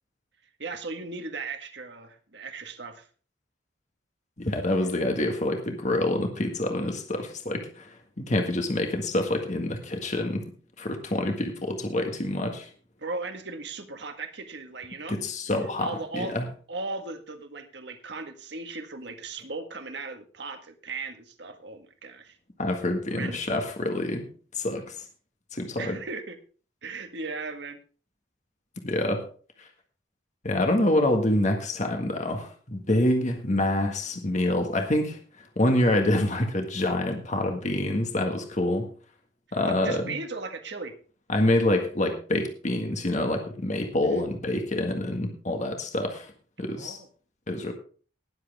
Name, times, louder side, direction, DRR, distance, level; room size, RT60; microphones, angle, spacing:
voice 1, 0.6-3.1 13.0-15.2 15.8-16.4 16.7-22.4 23.1-23.5 25.8-26.4 26.8-27.8 39.6-40.9 44.0-44.2 46.8-47.1, right 3 dB, 60° right, 6 dB, 1.7 m, -37 dB
voice 2, 4.4-7.9 8.2-10.4 10.8-12.7 15.1-16.4 22.6-24.3 24.5-24.9 25.5-26.0 28.8-29.3 29.6-29.7 30.4-35.2 35.6-38.9 39.5-40.1 41.3-46.3 46.6-47.0 47.5-47.7, left 1 dB, 35° left, 4 dB, 1.7 m, -26 dB
19.5 x 7.7 x 3.6 m, 0.40 s
head